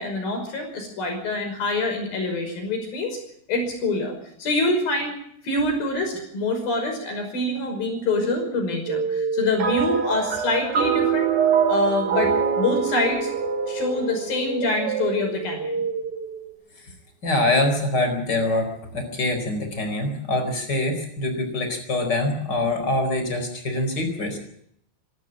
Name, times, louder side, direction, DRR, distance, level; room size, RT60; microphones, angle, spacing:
voice 1, 0.0-3.2 3.5-5.2 5.4-11.3 11.7-13.3 13.7-15.8, left 2 dB, 55° left, 4 dB, 7.2 m, -25 dB
sound 1, 8.2-16.5, right 6 dB, 90° right, 6.5 m, -28 dB
sound 2, 9.6-15.1, right 7 dB, 55° right, 4.4 m, -26 dB
voice 2, 17.2-24.4, left 2 dB, 25° left, 6 dB, 4.5 m, -24 dB
25.5 x 12.5 x 8.8 m, 0.69 s
omnidirectional pair, 5.1 m